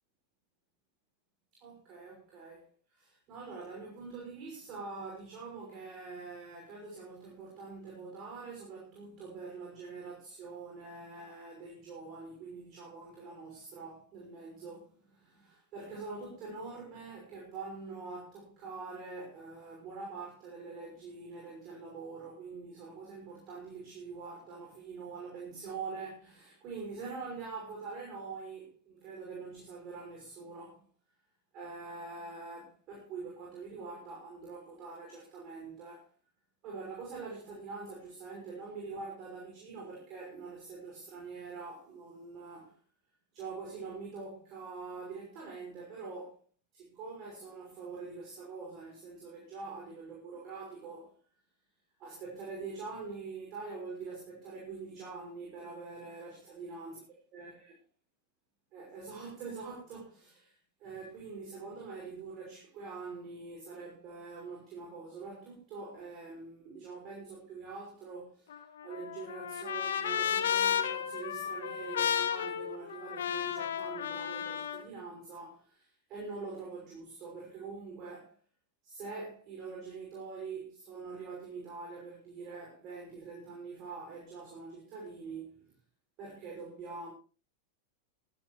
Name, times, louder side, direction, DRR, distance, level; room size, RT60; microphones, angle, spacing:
voice 1, 1.5-30.9 31.5-36.1 36.6-42.8 43.3-46.4 46.7-51.2 52.0-57.0 57.3-57.7 58.7-78.3 78.8-85.7 86.2-87.1, right 4 dB, 35° right, 5.8 m, -44 dB
Trumpet, 68.5-74.8, left 9 dB, 60° left, 1.3 m, -33 dB
23.5 x 10.5 x 3.2 m
figure-of-eight pair, 90°, 0 cm